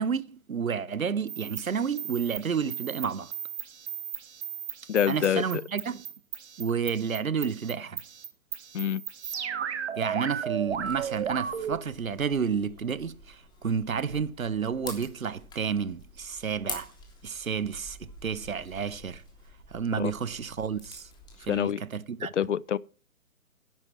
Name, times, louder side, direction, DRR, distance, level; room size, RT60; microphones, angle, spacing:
voice 1, 0.0-3.3 5.1-6.0 6.6-8.0 10.0-16.9 17.2-19.2 19.7-21.1 21.4-22.3, right 6 dB, 75° right, 0.9 m, -30 dB
sound 1, 1.3-11.8, right 8 dB, 50° right, 1.8 m, -36 dB
voice 2, 4.9-5.4 8.7-9.0 20.0-20.1 21.5-21.8 22.3-22.8, left 9 dB, 60° left, 0.6 m, -26 dB
sound 2, 10.7-21.6, left 4 dB, 10° left, 3.1 m, -47 dB
12.0 x 10.5 x 4.5 m
figure-of-eight pair, 125°, 41 cm